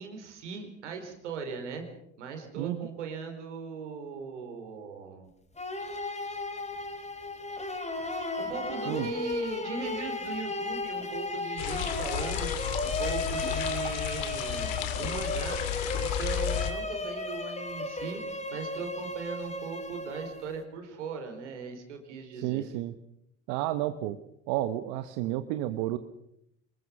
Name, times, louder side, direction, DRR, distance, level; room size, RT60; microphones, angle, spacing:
voice 1, 0.0-1.9 2.2-5.3 8.4-15.6 16.0-18.2 18.5-22.6, right 5 dB, 85° right, 5 dB, 4.1 m, -39 dB
voice 2, 2.6-2.9 8.9-9.1 22.4-22.9 23.5-24.2 24.5-26.0, right 14 dB, 70° right, 10 dB, 1.3 m, -31 dB
sound 1, 5.6-20.6, left 2 dB, 20° left, 3.9 m, -35 dB
sound 2, 11.6-16.7, left 11 dB, 70° left, 2.6 m, -33 dB
24.5 x 21.0 x 6.1 m, 0.80 s
hypercardioid pair, 65°, 34 cm